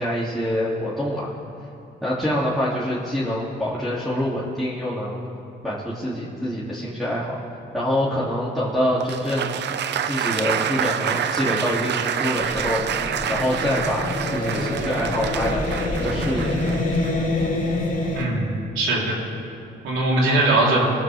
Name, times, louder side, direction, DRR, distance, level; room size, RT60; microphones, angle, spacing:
voice 1, 0.0-1.3 2.0-5.2 5.6-7.4 7.7-9.6 10.0-12.8 13.3-16.5, equal, ahead, -9 dB, 2.8 m, -25 dB
Applause, 9.0-17.9, right 8 dB, 60° right, 0.7 m, -28 dB
sound 1, 12.4-18.2, left 2 dB, 45° left, 3.0 m, -26 dB
voice 2, 18.1-19.2 19.8-20.9, right 2 dB, 85° right, -4 dB, 3.8 m, -21 dB
23.5 x 14.5 x 3.6 m, 2.6 s
cardioid pair, 90°, 20 cm